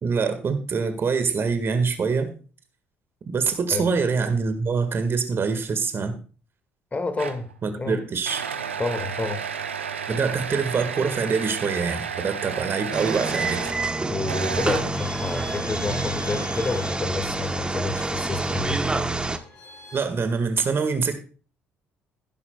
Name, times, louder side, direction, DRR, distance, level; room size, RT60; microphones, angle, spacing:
voice 1, 0.0-2.3 3.3-6.2 7.6-8.5 10.1-13.7 19.9-21.1, right 5 dB, 35° right, 8 dB, 1.8 m, -25 dB
voice 2, 6.9-7.5 7.7-8.0 8.8-9.4 14.1-18.8, left 3 dB, 25° left, 8 dB, 2.0 m, -29 dB
sound 1, 7.2-7.5 8.2-13.8 14.3-15.1, right 7 dB, 85° right, 0.7 m, -32 dB
sound 2, 12.9-19.4, right 2 dB, 15° right, 1.1 m, -27 dB
sound 3, 15.0-20.0, left 1 dB, 55° left, 5.1 m, -44 dB
16.0 x 11.0 x 2.3 m, 0.37 s
figure-of-eight pair, 50°, 6 cm